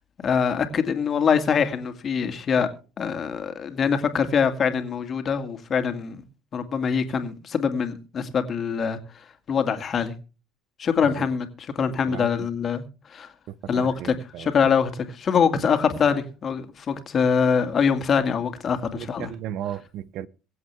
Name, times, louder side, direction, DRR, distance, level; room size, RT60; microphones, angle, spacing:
voice 1, 0.2-2.7 3.0-6.2 6.5-9.0 9.5-10.2 10.8-12.8 13.1-13.3 13.7-19.3, left 6 dB, 40° left, 2.2 m, -24 dB
voice 2, 12.1-12.5 13.5-14.5 15.5-15.6 18.9-20.3, right 11 dB, 60° right, 0.6 m, -35 dB
23.5 x 7.9 x 3.5 m
hypercardioid pair, 65°, 0 cm